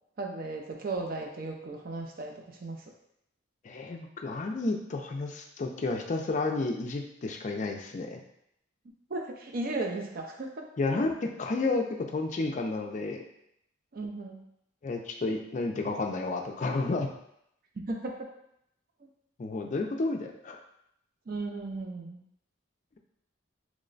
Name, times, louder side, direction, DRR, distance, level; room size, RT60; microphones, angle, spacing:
voice 1, 0.2-2.8 9.1-10.7 13.9-14.4 17.8-18.3 21.3-22.2, right 2 dB, 50° right, 2 dB, 0.4 m, -36 dB
voice 2, 3.6-8.2 10.8-13.2 14.8-17.1 19.4-20.6, left 3 dB, 40° left, 3 dB, 0.4 m, -31 dB
3.1 x 2.1 x 3.8 m, 0.76 s
head